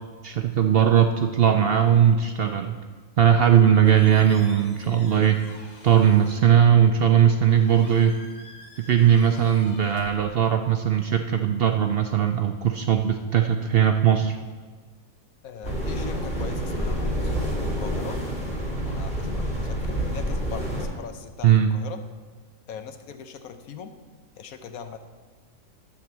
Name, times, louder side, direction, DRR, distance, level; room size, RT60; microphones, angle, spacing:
voice 1, 0.2-2.8 3.2-5.4 5.8-8.1 8.9-14.3 21.4-21.7, right 9 dB, 65° right, 6 dB, 0.6 m, -19 dB
Squeak, 3.5-10.8, left 1 dB, 70° left, 2.1 m, -49 dB
voice 2, 15.4-17.3 17.6-18.2 18.8-22.0 22.7-24.0 24.4-25.0, left 7 dB, 90° left, 8 dB, 1.2 m, -40 dB
sound 1, 15.6-20.9, equal, 5° left, 2.5 m, -28 dB
12.0 x 4.3 x 7.1 m, 1.4 s
omnidirectional pair, 1.4 m